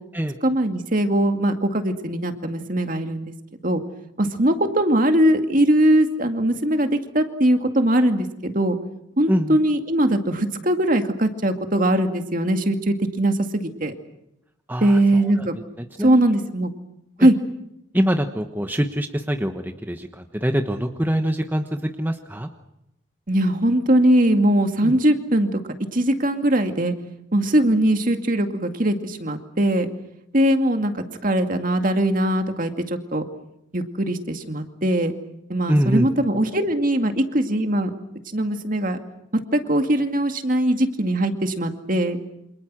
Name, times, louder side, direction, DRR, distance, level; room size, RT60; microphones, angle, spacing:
voice 1, 0.4-3.3 3.6-3.8 4.2-8.8 9.2-13.9 14.8-15.5 16.0-16.7 17.2-17.4 23.3-25.5 25.9-26.9 27.3-29.9 30.3-33.2 33.7-35.1 35.5-37.9 38.3-39.0 39.3-42.2, right 1 dB, 45° right, 6 dB, 2.2 m, -21 dB
voice 2, 9.3-9.6 14.7-15.5 15.8-16.3 17.2-17.3 17.9-22.5 24.8-24.9 35.7-36.1, equal, 10° right, 6 dB, 1.2 m, -24 dB
28.5 x 27.0 x 6.3 m, 0.83 s
head